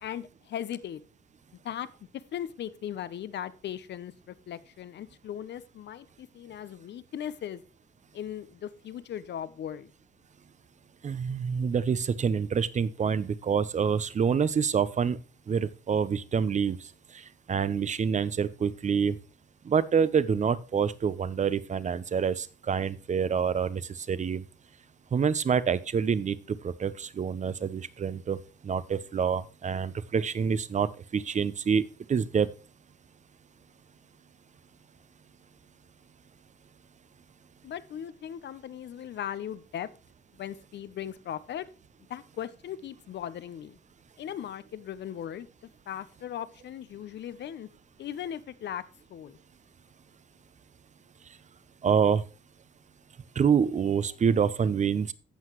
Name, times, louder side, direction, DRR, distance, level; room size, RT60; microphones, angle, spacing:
voice 1, 0.0-1.0 1.6-1.9 2.3-7.6 8.1-9.9 37.6-39.9 40.3-41.7 42.1-43.8 44.2-47.7 48.0-48.8 49.1-49.4, left 10 dB, 60° left, 0.8 m, -38 dB
voice 2, 11.0-15.2 15.5-16.8 17.1-19.2 19.6-24.4 25.1-26.4 26.6-28.4 28.6-32.5 51.8-52.2 53.4-55.1, right 6 dB, 35° right, 0.7 m, -27 dB
15.5 x 5.8 x 3.1 m
cardioid pair, 90°, 20 cm